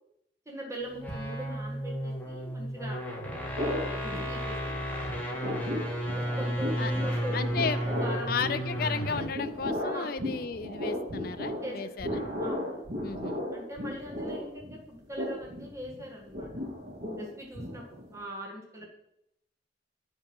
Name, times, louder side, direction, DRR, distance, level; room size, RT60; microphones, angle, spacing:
voice 1, 0.5-3.0 3.8-4.8 6.1-8.3 9.9-10.1 11.6-11.8 12.4-12.9 13.5-16.5 17.2-18.9, equal, 15° right, -1 dB, 1.7 m, -41 dB
sound 1, 0.9-9.4, equal, 10° left, 1.4 m, -33 dB
sound 2, 3.6-4.8 5.1-18.2, left 1 dB, 60° right, 2.4 m, -36 dB
voice 2, 7.3-7.8 8.3-12.2 13.0-13.4, left 5 dB, 55° left, 12 dB, 0.5 m, -33 dB
9.4 x 5.2 x 5.4 m, 0.77 s
head